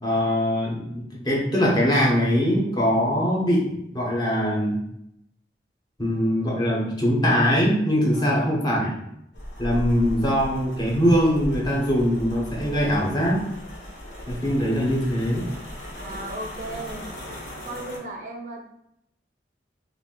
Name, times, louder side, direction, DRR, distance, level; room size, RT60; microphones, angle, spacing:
voice 1, 0.0-4.8 6.0-9.0 9.6-13.5 14.3-15.5, equal, 25° left, -3 dB, 0.6 m, -22 dB
voice 2, 8.1-8.6 16.0-17.1 17.6-18.6, right 2 dB, 45° right, 2 dB, 0.3 m, -36 dB
sound 1, 9.3-18.0, equal, 65° left, 0.7 m, -36 dB
2.4 x 2.0 x 3.6 m, 0.78 s
head